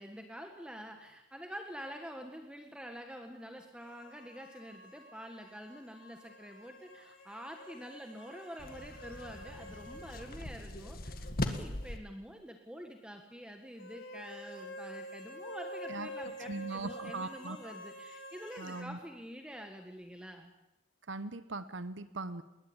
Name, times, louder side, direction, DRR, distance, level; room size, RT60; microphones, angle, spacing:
voice 1, 0.0-20.5, equal, 5° right, 4 dB, 1.6 m, -47 dB
sound 1, 3.8-10.3 10.6-10.7 13.8-18.9, equal, 75° left, 4.3 m, -48 dB
sound 2, 8.6-12.0, left 1 dB, 50° left, 1.8 m, -39 dB
voice 2, 16.5-17.7 18.6-19.0 21.1-22.4, right 3 dB, 70° right, 13 dB, 1.0 m, -40 dB
21.0 x 20.0 x 8.8 m, 0.91 s
head